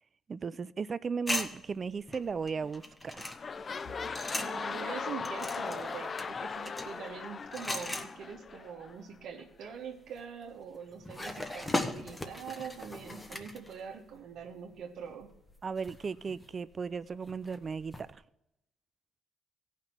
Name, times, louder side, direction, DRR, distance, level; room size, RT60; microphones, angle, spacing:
voice 1, 0.3-3.3 15.6-18.2, right 5 dB, 40° right, 0.4 m, -36 dB
sound 1, 1.3-4.7 5.1-8.8 9.1-9.2 9.9-14.3 14.7-18.1, left 1 dB, 15° left, 1.2 m, -39 dB
sound 2, 2.6-2.9 3.1-9.0 9.6-9.7, left 5 dB, 40° left, 0.4 m, -39 dB
sound 3, 3.8-15.7 16.1-16.4 16.7-16.9 17.8-18.2, equal, 80° left, 1.5 m, -64 dB
voice 2, 4.4-15.3, right 7 dB, 80° right, 1.3 m, -44 dB
16.5 x 5.8 x 4.4 m
cardioid pair, 90°, 0 cm